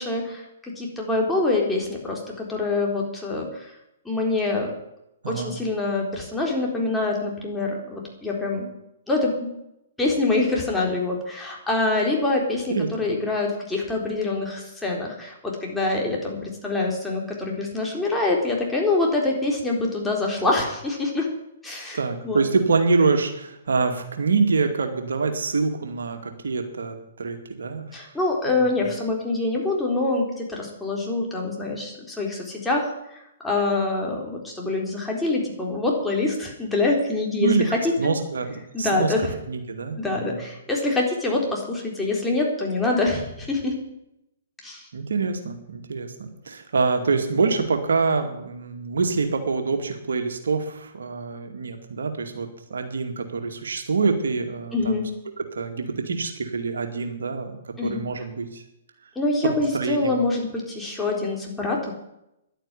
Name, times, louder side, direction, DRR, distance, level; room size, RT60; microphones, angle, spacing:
voice 1, 0.0-3.7 4.1-4.7 5.3-8.7 9.1-9.5 10.0-21.3 21.6-22.0 22.2-22.4 27.9-38.1 38.7-39.3 40.0-43.8 44.6-44.9 54.7-55.0 57.8-58.0 59.2-61.9, left 2 dB, 5° left, -2 dB, 3.9 m, -25 dB
voice 2, 5.2-5.5 12.7-12.9 21.9-27.9 28.5-28.9 37.4-37.6 38.0-39.1 39.5-40.4 44.9-55.0 55.6-57.6 57.8-58.6 59.7-60.1, right 4 dB, 80° right, 5 dB, 2.3 m, -25 dB
11.0 x 9.2 x 9.9 m, 0.84 s
hypercardioid pair, 130°, 0 cm